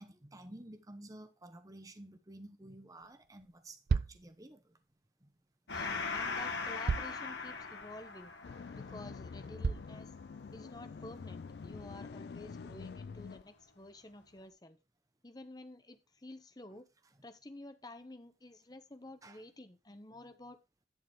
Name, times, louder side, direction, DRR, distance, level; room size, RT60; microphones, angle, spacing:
voice 1, 0.0-4.8 5.2-5.3 19.2-19.4, right 1 dB, 20° right, 0.9 m, -52 dB
DW Bass Drum, 3.4-3.5 3.9-4.2 5.8-5.9 6.9-7.2 7.8-7.9 8.5-8.6 9.6-10.0, right 5 dB, 55° right, 0.4 m, -32 dB
Gong, 5.7-12.6, left 4 dB, 90° left, 1.8 m, -41 dB
voice 2, 5.7-8.3 8.7-10.1 10.5-14.8 15.2-16.9 17.2-20.6, left 2 dB, 20° left, 0.9 m, -51 dB
sound 1, 8.4-13.4, left 5 dB, 65° left, 0.3 m, -46 dB
11.0 x 6.6 x 3.1 m
head